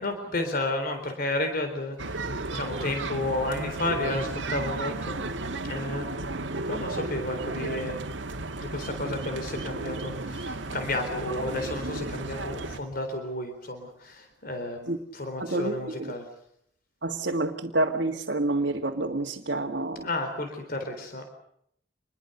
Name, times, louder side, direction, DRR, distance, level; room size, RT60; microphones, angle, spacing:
voice 1, 0.0-2.3 2.5-6.3 6.7-8.1 8.6-16.3 20.0-21.2, left 2 dB, 50° left, 6 dB, 4.0 m, -32 dB
sound 1, 2.0-12.8, right 2 dB, 90° right, 1.6 m, -34 dB
voice 2, 17.0-20.1, right 2 dB, 65° right, -1 dB, 1.9 m, -28 dB
26.0 x 22.0 x 6.8 m, 0.71 s
head